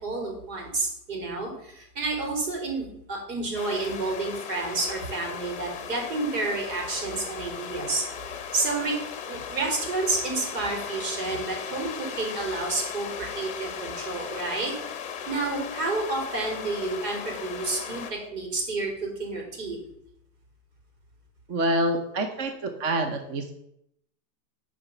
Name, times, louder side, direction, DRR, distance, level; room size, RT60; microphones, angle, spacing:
voice 1, 0.0-9.0 9.3-14.7 15.3-19.8, right 3 dB, 70° right, 1 dB, 4.5 m, -30 dB
sound 1, 3.5-18.1, left 7 dB, 15° left, 0.8 m, -37 dB
voice 2, 21.5-23.5, right 1 dB, 25° right, 6 dB, 0.6 m, -27 dB
8.6 x 5.1 x 6.9 m, 0.77 s
supercardioid pair, 150°, 49 cm